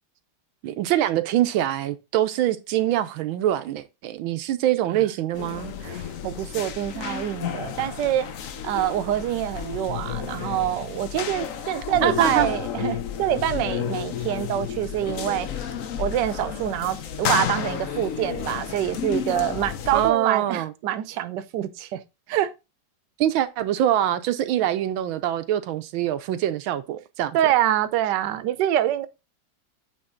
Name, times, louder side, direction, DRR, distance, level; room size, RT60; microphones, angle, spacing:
voice 1, 0.6-5.7 12.0-12.5 12.8-12.9 19.9-20.7 23.2-27.4, right 12 dB, 90° right, 1.5 m, -24 dB
sound 1, 5.3-20.1, left 8 dB, 60° left, 0.9 m, -31 dB
voice 2, 5.8-8.3 8.6-15.5 16.0-22.0 22.3-22.5 27.3-29.1, right 12 dB, 70° right, 1.2 m, -26 dB
8.7 x 3.6 x 3.7 m
omnidirectional pair, 2.2 m